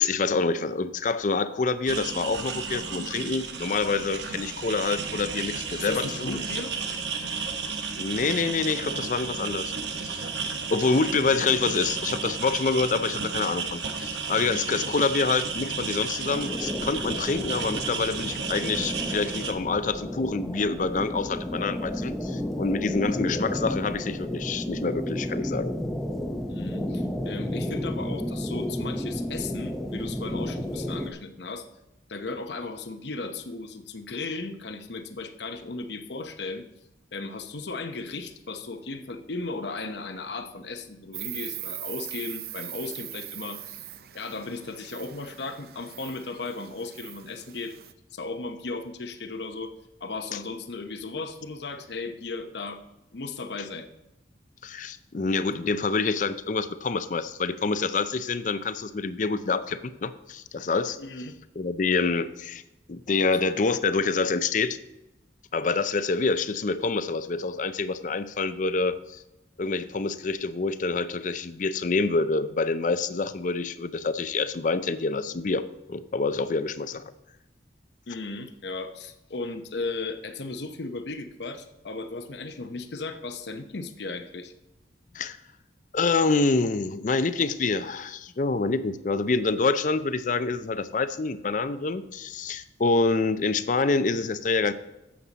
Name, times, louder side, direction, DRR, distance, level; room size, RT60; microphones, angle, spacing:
voice 1, 0.0-6.4 8.0-9.7 10.0-10.3 10.7-25.7 54.6-61.0 61.6-62.6 62.9-64.8 65.5-69.2 69.6-77.0 85.1-85.4 85.9-94.7, left 4 dB, 45° left, 13 dB, 0.5 m, -27 dB
sound 1, 1.9-19.5, right 5 dB, 75° right, 1.1 m, -33 dB
voice 2, 5.8-6.8 26.5-31.7 32.1-36.7 37.1-43.8 44.1-47.8 48.1-49.7 50.0-52.8 53.1-53.9 61.0-61.4 78.1-84.5, left 3 dB, 70° left, 8 dB, 0.8 m, -36 dB
sound 2, 16.3-31.1, left 1 dB, ahead, 0.7 m, -32 dB
Insect, 41.1-47.9, right 13 dB, 55° right, 0.5 m, -40 dB
11.0 x 7.7 x 4.0 m, 0.94 s
head